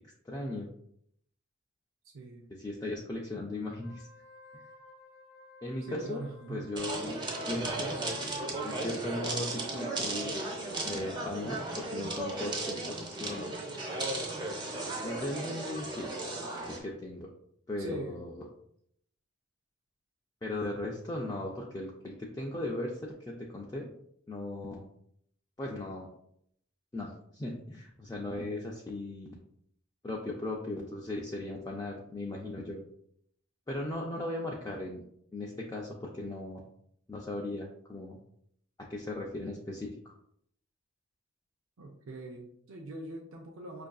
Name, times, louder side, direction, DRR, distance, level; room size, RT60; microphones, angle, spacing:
voice 1, 0.2-0.7 2.5-4.1 4.5-4.6 5.6-6.2 6.5-10.3 10.8-13.5 15.0-16.1 16.7-17.3 17.7-18.5 20.4-23.9 24.3-24.9 25.6-26.1 26.9-29.4 30.0-32.8 33.7-35.0 35.3-36.6 37.1-38.2 38.8-40.1, left 1 dB, 15° left, -2 dB, 0.4 m, -38 dB
voice 2, 2.1-2.5 5.8-6.7 17.8-18.2 41.8-43.9, right 1 dB, 80° right, 0 dB, 0.5 m, -42 dB
Wind instrument woodwind instrument, 3.7-9.0, left 3 dB, 50° left, 0.7 m, -56 dB
sound 1, 6.8-16.8, right 2 dB, 20° right, 0.6 m, -35 dB
5.4 x 2.5 x 2.3 m, 0.70 s
head